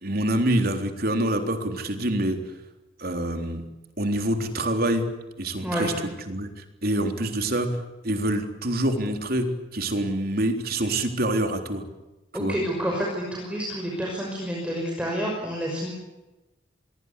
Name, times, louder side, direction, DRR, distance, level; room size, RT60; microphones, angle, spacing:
voice 1, 0.0-2.4 3.0-3.6 4.0-5.1 5.4-7.7 8.0-9.5 9.7-11.8 12.4-12.6, right 1 dB, 50° right, 6 dB, 3.7 m, -26 dB
voice 2, 5.6-5.9 12.3-15.9, equal, 5° right, -2 dB, 5.8 m, -29 dB
27.0 x 22.0 x 8.3 m, 1.1 s
head